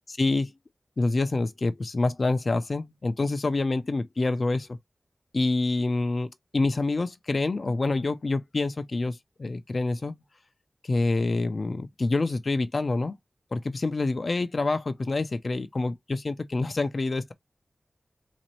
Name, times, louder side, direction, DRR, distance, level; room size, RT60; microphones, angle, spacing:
voice 1, 0.1-0.5 1.0-4.8 5.3-10.2 10.8-13.1 13.5-17.3, left 3 dB, 50° left, 0.5 m, -27 dB
4.0 x 2.5 x 3.0 m
wide cardioid pair, 110°, 0 cm